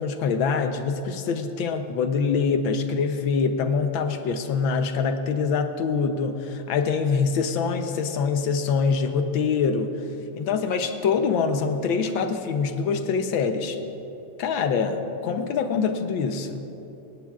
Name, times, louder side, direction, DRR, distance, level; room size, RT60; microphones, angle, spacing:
voice 1, 0.0-10.0 10.3-13.8 14.4-16.7, left 5 dB, 75° left, 7 dB, 1.5 m, -24 dB
19.0 x 17.5 x 2.4 m, 2.9 s
omnidirectional pair, 2.2 m